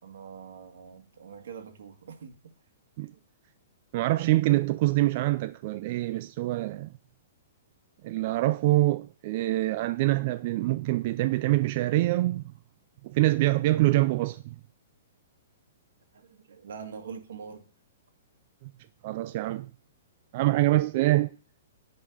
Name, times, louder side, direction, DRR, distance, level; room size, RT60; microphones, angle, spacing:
voice 1, 0.0-2.4 3.1-3.2 16.1-17.7, right 6 dB, 80° right, 1.8 m, -44 dB
voice 2, 3.9-6.9 8.0-12.4 13.0-14.6 18.6-18.7 19.0-19.7 20.3-21.3, right 17 dB, 35° right, 0.3 m, -25 dB
9.4 x 5.4 x 4.9 m
hypercardioid pair, 170°, 0 cm